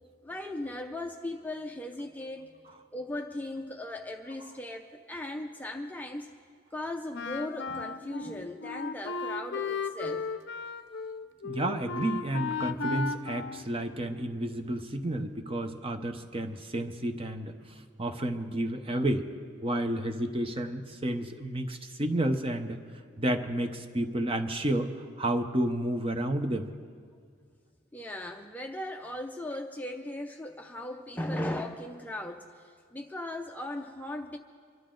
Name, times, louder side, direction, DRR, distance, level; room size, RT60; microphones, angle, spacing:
voice 1, 0.2-2.5 2.9-6.3 6.7-10.3 27.9-34.4, left 1 dB, 10° left, 3 dB, 0.5 m, -37 dB
Wind instrument woodwind instrument, 7.1-14.3, left 4 dB, 60° left, 0.6 m, -35 dB
voice 2, 11.4-19.3 19.6-22.8 23.2-26.7, right 1 dB, 25° right, 6 dB, 0.8 m, -31 dB
25.0 x 12.5 x 3.8 m, 2.1 s
head